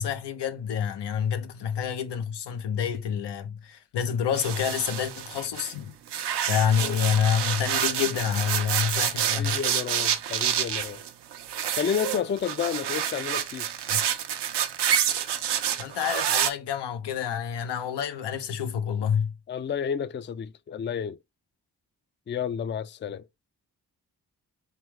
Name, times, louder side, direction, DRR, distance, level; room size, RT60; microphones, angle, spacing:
voice 1, 0.0-5.9 6.5-9.6 13.9-14.0 15.8-19.3, left 8 dB, 85° left, 0.7 m, -28 dB
sound 1, 4.3-5.7 6.1-16.5, right 9 dB, 85° right, 0.7 m, -28 dB
voice 2, 9.2-11.0 11.7-13.7 19.5-21.2 22.3-23.2, left 7 dB, 30° left, 0.4 m, -31 dB
3.5 x 3.4 x 3.1 m
supercardioid pair, 45°, 40 cm